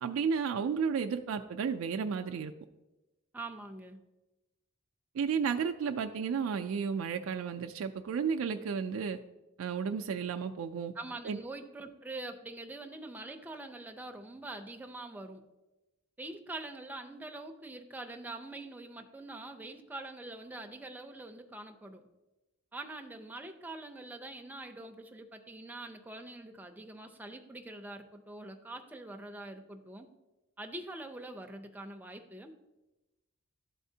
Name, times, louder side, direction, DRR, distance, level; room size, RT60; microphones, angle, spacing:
voice 1, 0.0-2.5 5.1-9.2 9.6-10.9 11.2-11.4, right 6 dB, 75° right, 6 dB, 0.3 m, -32 dB
voice 2, 3.3-4.0 10.9-15.4 16.2-22.0 22.7-30.1 30.6-32.7, right 2 dB, 10° right, 4 dB, 0.5 m, -44 dB
11.5 x 4.2 x 2.7 m, 1.0 s
head